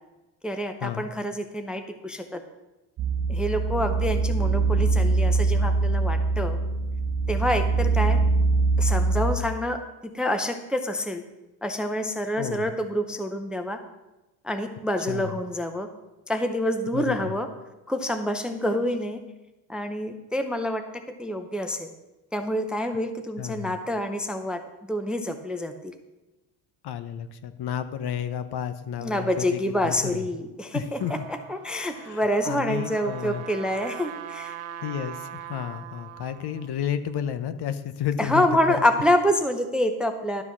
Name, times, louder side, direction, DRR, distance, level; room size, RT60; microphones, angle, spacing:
voice 1, 0.4-2.4 3.3-6.6 7.3-8.2 8.8-11.2 11.6-13.8 14.4-15.9 16.3-17.5 17.9-19.2 19.7-20.8 21.2-21.9 22.3-24.6 24.9-25.9 29.0-34.5 38.2-40.4, left 1 dB, ahead, 7 dB, 0.6 m, -27 dB
sound 1, 3.0-9.4, right 3 dB, 45° right, 1.1 m, -23 dB
voice 2, 12.4-12.7 15.1-15.4 16.9-17.3 23.4-23.8 26.8-30.2 30.7-31.3 31.9-33.4 34.8-38.5 38.8-38.9, left 9 dB, 55° left, 11 dB, 0.8 m, -32 dB
Trumpet, 30.7-36.7, right 11 dB, 80° right, 1.0 m, -41 dB
12.0 x 6.1 x 6.0 m, 1.0 s
cardioid pair, 120°, 48 cm